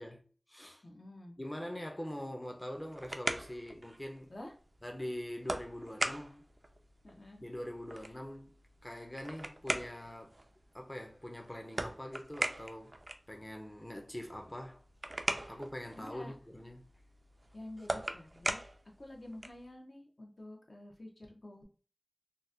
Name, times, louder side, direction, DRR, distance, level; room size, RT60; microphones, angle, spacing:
voice 1, 0.0-0.8 1.4-4.3 4.8-6.5 7.4-8.5 8.8-10.4 10.7-13.0 13.3-14.8 15.5-16.8, left 1 dB, 20° left, 0.5 m, -43 dB
voice 2, 0.8-1.3 4.3-4.5 7.0-7.4 8.0-8.2 16.0-16.3 17.5-18.6 19.0-21.6, left 1 dB, 70° left, 0.7 m, -49 dB
sound 1, 2.6-19.7, right 1 dB, 50° right, 0.3 m, -42 dB
3.9 x 2.1 x 2.4 m
wide cardioid pair, 55°, 0 cm